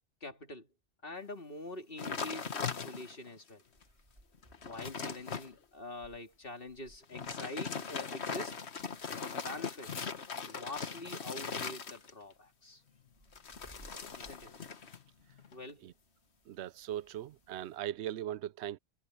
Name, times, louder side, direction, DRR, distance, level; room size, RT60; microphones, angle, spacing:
voice 1, 0.2-0.7 1.0-3.6 4.6-8.7 9.1-10.1 10.4-12.8 14.2-14.5 15.5-15.9, left 2 dB, 55° left, 2.8 m, -45 dB
sound 1, 2.0-3.3 3.8-3.9 4.3-5.5 7.0-12.3 13.3-15.0 15.3-15.7, left 5 dB, 85° left, 1.6 m, -40 dB
Meow, 3.6-17.6, right 1 dB, 30° right, 5.3 m, -65 dB
voice 2, 16.5-18.8, right 12 dB, 85° right, 0.8 m, -39 dB
omnidirectional pair, 1.1 m